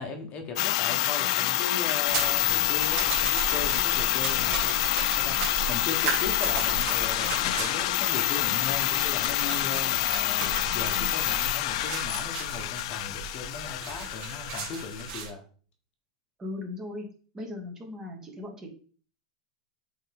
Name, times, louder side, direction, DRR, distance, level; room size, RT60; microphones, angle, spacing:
voice 1, 0.0-4.7 5.2-5.4 5.7-15.4, left 4 dB, 35° left, 4 dB, 1.3 m, -38 dB
sound 1, 0.6-15.1, left 15 dB, 60° left, 0.4 m, -27 dB
sound 2, 2.1-15.3, right 5 dB, 40° right, 2.7 m, -36 dB
voice 2, 16.4-17.1 17.3-18.7, left 2 dB, 15° right, 1 dB, 1.9 m, -38 dB
8.0 x 3.8 x 3.7 m, 0.41 s
supercardioid pair, 145°, 4 cm